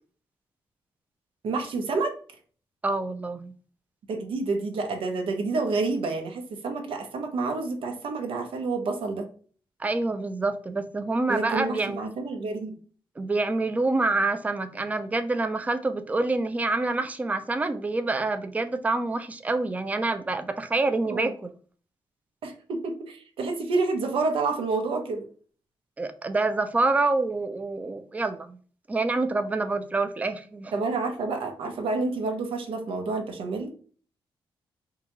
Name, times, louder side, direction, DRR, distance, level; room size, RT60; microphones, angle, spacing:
voice 1, 1.4-2.1 4.1-9.3 11.3-12.8 21.0-21.3 22.4-25.2 30.7-33.7, right 3 dB, 85° right, 4 dB, 0.7 m, -29 dB
voice 2, 2.8-3.5 9.8-12.1 13.2-21.5 26.0-28.6 28.9-30.7, right 3 dB, 15° right, 9 dB, 0.3 m, -27 dB
3.7 x 2.3 x 2.9 m, 0.42 s
wide cardioid pair, 130°, 9 cm